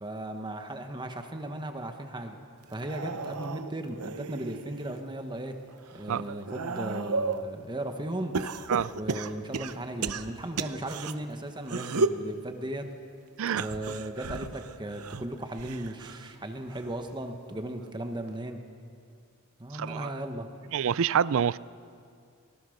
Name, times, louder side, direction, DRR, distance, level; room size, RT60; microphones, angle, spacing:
voice 1, 0.0-2.4 2.7-5.6 5.9-8.4 8.9-12.9 13.5-18.6 19.6-20.5, right 1 dB, 20° right, 1.2 m, -36 dB
sound 1, 2.7-5.0 5.5-7.5 8.3-11.1 11.6-12.3 13.5-16.3 16.7-17.1 18.3-18.4, right 3 dB, 90° right, 0.8 m, -34 dB
voice 2, 19.7-20.1 20.7-21.6, right 8 dB, 65° right, 0.4 m, -27 dB
23.5 x 19.0 x 6.5 m
head